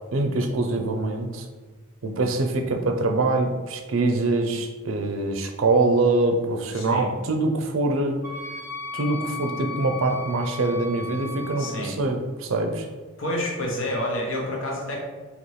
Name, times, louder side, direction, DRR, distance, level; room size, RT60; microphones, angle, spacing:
voice 1, 0.1-1.5 2.0-8.2 8.9-12.9, right 2 dB, 70° right, 5 dB, 0.5 m, -24 dB
voice 2, 6.7-7.1 11.6-12.0 13.2-15.0, left 1 dB, 65° left, -2 dB, 1.0 m, -28 dB
Wind instrument woodwind instrument, 8.2-11.8, left 2 dB, 15° right, 0.5 m, -35 dB
4.1 x 3.0 x 3.2 m, 1.4 s
head